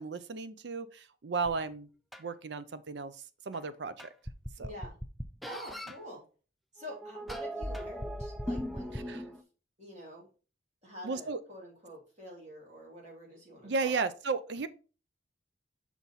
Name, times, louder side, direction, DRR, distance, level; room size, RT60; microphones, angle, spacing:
voice 1, 0.0-1.9 2.2-3.1 3.5-4.1 4.6-4.7 8.9-9.2 11.0-11.4 13.6-14.7, right 4 dB, 65° right, 0.5 m, -34 dB
sound 1, 1.4-1.5 2.1-2.2 3.5-3.6 4.0-6.0 6.8-9.4, equal, ahead, 0.3 m, -38 dB
voice 2, 4.6-4.9 5.5-6.2 6.7-9.4 9.8-10.3 10.8-14.1, equal, 35° right, 2.5 m, -47 dB
6.0 x 4.0 x 3.9 m
head